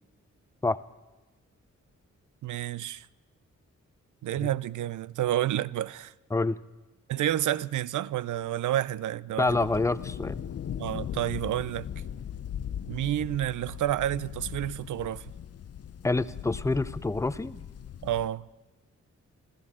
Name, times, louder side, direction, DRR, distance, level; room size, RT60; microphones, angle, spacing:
voice 1, 2.4-3.1 4.2-6.1 7.1-9.7 10.8-11.9 12.9-15.3 18.0-18.5, right 12 dB, 85° right, 0.5 m, -30 dB
voice 2, 9.4-10.4 16.0-17.6, left 3 dB, 10° left, 0.5 m, -27 dB
sound 1, 9.5-18.3, left 9 dB, 55° left, 0.6 m, -39 dB
28.0 x 13.5 x 3.7 m
cardioid pair, 65°, 30 cm